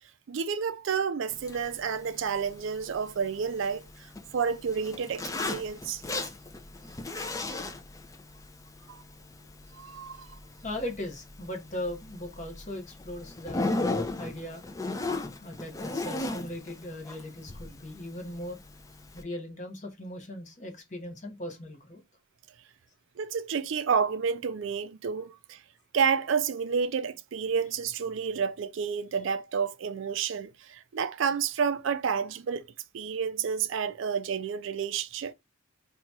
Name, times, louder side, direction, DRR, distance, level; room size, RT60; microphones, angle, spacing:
voice 1, 0.3-6.0 8.9-9.0 9.7-10.3 23.2-25.6 25.9-32.7 32.9-35.3, right 6 dB, 65° right, 0.4 m, -30 dB
Zipper (clothing), 1.3-19.2, left 2 dB, 15° left, 0.3 m, -37 dB
voice 2, 10.6-13.7 14.2-14.7 15.4-18.6 19.1-22.0, left 1 dB, 35° left, 0.9 m, -38 dB
2.9 x 2.3 x 4.0 m
head